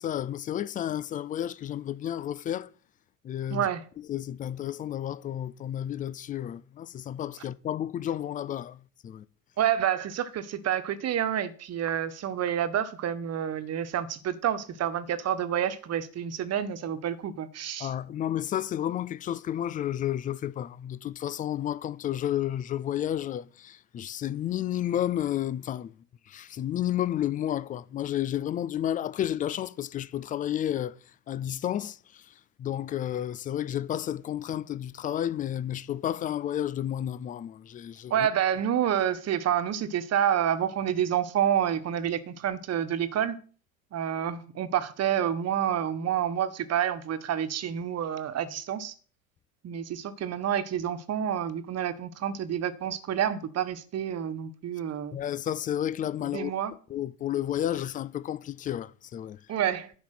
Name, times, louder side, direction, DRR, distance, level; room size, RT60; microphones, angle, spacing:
voice 1, 0.0-2.7 3.2-3.7 4.1-9.2 17.8-25.9 26.3-30.9 31.3-32.0 32.6-38.3 55.1-56.5 56.9-59.4, left 11 dB, 20° left, 0.4 m, -31 dB
voice 2, 3.5-3.8 9.6-17.9 38.1-43.4 43.9-48.9 49.6-55.2 56.2-56.7 59.5-59.9, right 9 dB, 35° right, 1.5 m, -28 dB
11.0 x 5.3 x 7.8 m
figure-of-eight pair, 80°, 45 cm